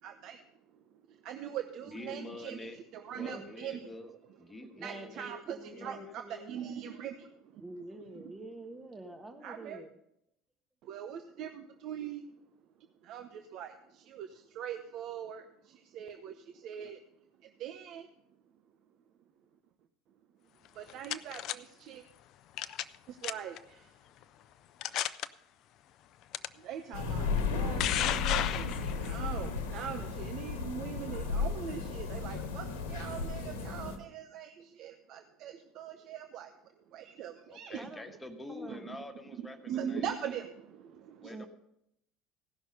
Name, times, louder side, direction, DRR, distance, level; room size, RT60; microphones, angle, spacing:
voice 1, 0.0-4.1 4.5-7.6 8.1-8.3 9.4-9.8 10.9-12.3 12.8-17.0 17.4-18.1 20.7-22.0 23.1-24.0 26.5-37.9 38.6-38.8 39.3-41.3, right 9 dB, 55° right, 7 dB, 0.8 m, -42 dB
voice 2, 1.9-2.8 3.2-4.1 4.4-5.3 5.7-6.2 37.5-40.3 41.2-41.5, left 2 dB, 15° left, 6 dB, 1.5 m, -46 dB
voice 3, 4.8-6.5 7.6-9.9 37.8-38.0 38.5-38.9 41.3-41.5, right 2 dB, 15° right, 5 dB, 1.3 m, -46 dB
sound 1, 20.7-21.6 22.6-23.0 23.2-23.6 24.2-24.3 24.8-25.3 26.3-26.5 27.4-29.2, left 12 dB, 55° left, 0.4 m, -33 dB
sound 2, 26.9-34.0, left 5 dB, 75° left, 1.4 m, -34 dB
16.0 x 6.1 x 5.3 m, 0.78 s
hypercardioid pair, 70°, 0 cm